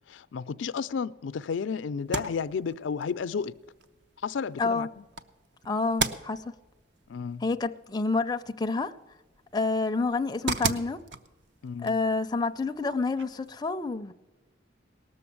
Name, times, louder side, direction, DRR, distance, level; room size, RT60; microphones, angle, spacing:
voice 1, 0.1-3.5 4.2-4.9 7.1-7.4 11.6-11.9, left 6 dB, 85° left, 0.4 m, -32 dB
sound 1, 2.0-13.6, right 4 dB, 65° right, 0.7 m, -39 dB
voice 2, 4.6-4.9 5.6-6.5 7.4-9.0 9.5-11.0 11.8-14.1, left 3 dB, 20° left, 0.4 m, -28 dB
18.5 x 7.0 x 8.5 m
head